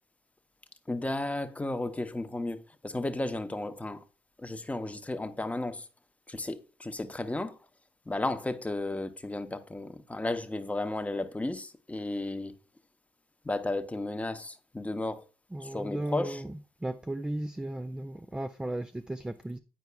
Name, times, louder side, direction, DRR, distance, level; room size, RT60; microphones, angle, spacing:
voice 1, 0.9-4.0 4.4-5.8 6.3-7.6 8.1-12.5 13.4-15.2 15.6-16.4, left 2 dB, 15° left, 0.7 m, -34 dB
voice 2, 15.5-16.5 16.8-19.6, right 1 dB, 5° right, 0.3 m, -35 dB
9.4 x 4.6 x 2.2 m
hypercardioid pair, 60°, 11 cm